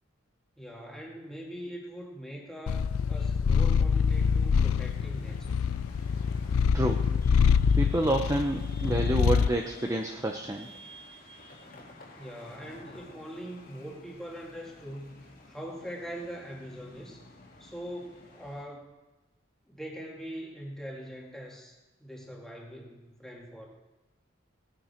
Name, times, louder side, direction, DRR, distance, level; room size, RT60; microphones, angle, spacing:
voice 1, 0.6-5.6 12.2-17.2 17.6-18.8 19.7-23.7, equal, ahead, -2 dB, 2.2 m, -42 dB
Purr, 2.7-9.6, left 6 dB, 85° left, 0.4 m, -25 dB
sound 1, 4.1-18.6, left 1 dB, 45° left, 2.1 m, -51 dB
voice 2, 6.7-7.1 7.8-10.7, right 1 dB, 15° right, 3 dB, 0.7 m, -28 dB
18.5 x 9.1 x 4.5 m, 1.1 s
head